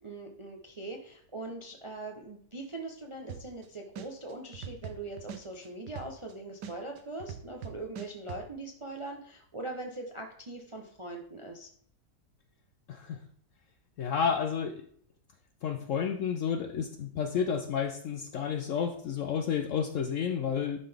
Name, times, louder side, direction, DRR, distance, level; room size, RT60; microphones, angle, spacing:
voice 1, 0.0-11.7, right 2 dB, 35° right, 2 dB, 0.4 m, -41 dB
sound 1, 3.3-3.7 4.0-6.3 6.6-8.4, right 8 dB, 85° right, 1.4 m, -41 dB
voice 2, 14.0-14.8 15.6-20.8, left 7 dB, 70° left, 7 dB, 0.8 m, -31 dB
11.0 x 3.9 x 3.4 m, 0.62 s
omnidirectional pair, 1.7 m